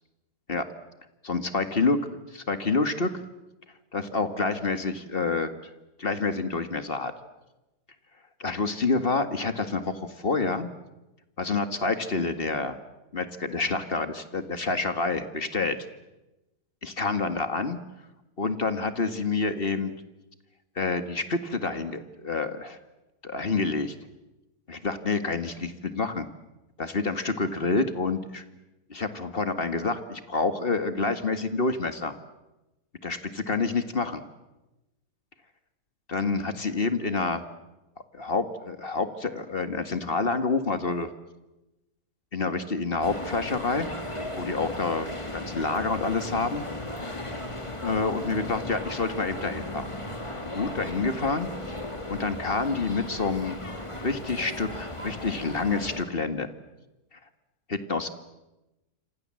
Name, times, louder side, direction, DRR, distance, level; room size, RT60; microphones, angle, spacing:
voice 1, 1.2-2.0 2.3-3.1 3.9-5.5 6.0-7.1 8.4-10.7 11.4-12.8 13.1-15.8 16.8-17.8 18.4-19.9 20.8-22.8 23.2-23.9 24.7-26.3 26.8-28.4 28.9-32.1 33.0-34.2 36.1-37.4 38.1-41.1 42.3-43.9 44.4-45.1 45.3-46.7 47.8-49.9 50.4-51.5 52.1-53.6 53.9-56.5 57.7-58.1, left 3 dB, 35° left, 10 dB, 2.0 m, -28 dB
sound 1, 43.0-56.0, left 1 dB, 15° left, 2.7 m, -36 dB
28.5 x 26.5 x 7.7 m, 1.0 s
omnidirectional pair, 1.8 m